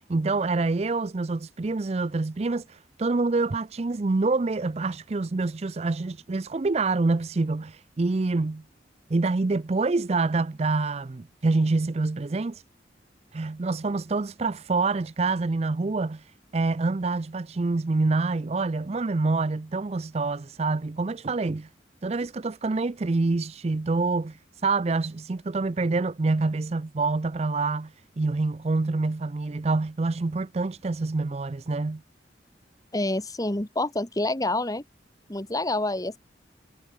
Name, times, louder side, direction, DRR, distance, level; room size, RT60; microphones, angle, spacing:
voice 1, 0.1-8.6 9.1-12.6 13.3-16.2 16.5-21.7 22.0-24.4 24.6-27.9 28.2-32.0, right 3 dB, 35° right, 0.5 m, -26 dB
voice 2, 32.9-34.8 35.3-36.2, left 2 dB, 20° left, 1.4 m, -27 dB
head